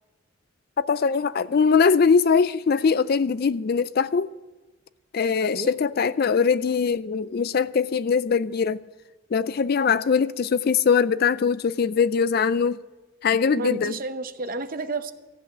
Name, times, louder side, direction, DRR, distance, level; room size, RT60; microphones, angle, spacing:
voice 1, 0.8-4.3 5.1-8.8 9.3-12.8 13.2-14.0, left 5 dB, 45° left, 0.4 m, -22 dB
voice 2, 13.5-15.1, right 2 dB, 40° right, 0.7 m, -31 dB
14.5 x 8.3 x 7.7 m
head